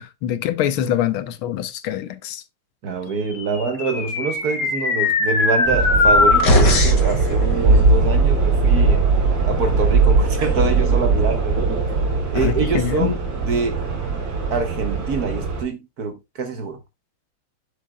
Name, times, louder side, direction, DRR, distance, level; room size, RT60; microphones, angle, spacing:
voice 1, 0.0-2.4 12.3-13.1, left 11 dB, 75° left, 1.6 m, -24 dB
voice 2, 2.8-9.0 9.4-11.8 12.3-13.8 14.5-16.8, right 4 dB, 50° right, 1.4 m, -25 dB
sound 1, 3.5-7.1, left 3 dB, 55° left, 2.5 m, -19 dB
sound 2, 5.7-15.6, right 4 dB, 85° right, 3.6 m, -19 dB
10.0 x 7.0 x 2.2 m
omnidirectional pair, 2.4 m